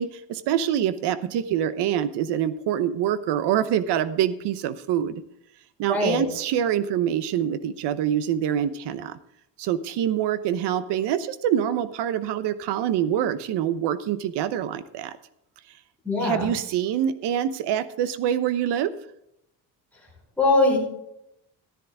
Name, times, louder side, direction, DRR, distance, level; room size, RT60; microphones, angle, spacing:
voice 1, 0.0-5.2 5.8-9.2 9.6-15.2 16.2-18.9, right 10 dB, 65° right, 14 dB, 0.9 m, -25 dB
voice 2, 5.9-6.2 16.0-16.5 20.4-20.8, left 2 dB, 5° left, -4 dB, 4.5 m, -21 dB
14.0 x 10.5 x 3.5 m, 0.80 s
cardioid pair, 170°, 43 cm